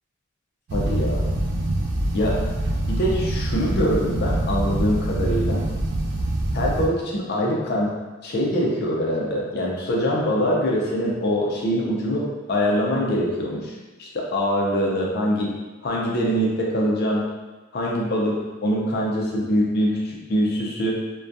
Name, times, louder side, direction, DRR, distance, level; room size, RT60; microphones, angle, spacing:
voice 1, 0.7-1.3 2.1-2.4 2.9-5.6 6.5-7.9 8.2-15.5 15.8-17.3 17.7-21.0, equal, 50° left, -3 dB, 0.5 m, -24 dB
sound 1, 0.7-6.9, right 1 dB, 55° right, 0.3 m, -25 dB
2.2 x 2.2 x 2.6 m, 1.2 s
head